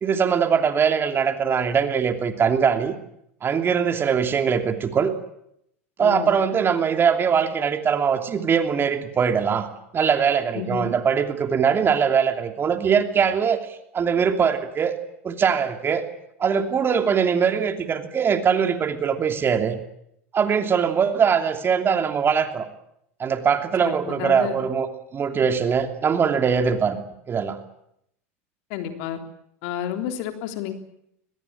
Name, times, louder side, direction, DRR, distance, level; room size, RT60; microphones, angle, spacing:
voice 1, 0.0-2.9 3.4-5.2 6.0-9.7 9.9-14.9 15.2-16.0 16.4-19.8 20.3-22.6 23.2-24.9 25.1-27.0 27.3-27.6, right 7 dB, 30° right, 7 dB, 2.9 m, -21 dB
voice 2, 6.0-6.4 10.5-10.9 23.8-24.6 28.7-29.2 29.6-30.7, left 9 dB, 60° left, 6 dB, 3.6 m, -30 dB
23.0 x 20.5 x 8.9 m, 0.77 s
hypercardioid pair, 90°, 8 cm